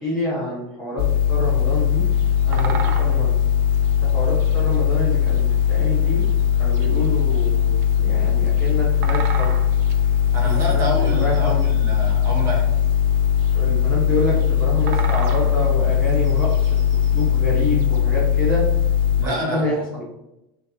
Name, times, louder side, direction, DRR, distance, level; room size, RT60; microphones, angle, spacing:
voice 1, 0.0-2.0 2.4-3.3 4.0-6.3 6.6-9.6 10.4-11.7 13.5-16.8 17.1-18.7 19.2-20.0, left 1 dB, 10° left, -10 dB, 1.2 m, -27 dB
sound 1, 1.0-19.2, left 8 dB, 65° left, 0.4 m, -19 dB
Bird vocalization bird call bird song, 1.4-18.0, right 6 dB, 50° right, 0.6 m, -38 dB
voice 2, 10.3-12.6 19.2-19.7, equal, 25° right, -2 dB, 1.4 m, -27 dB
6.2 x 2.9 x 2.8 m, 0.89 s
supercardioid pair, 175°, 12 cm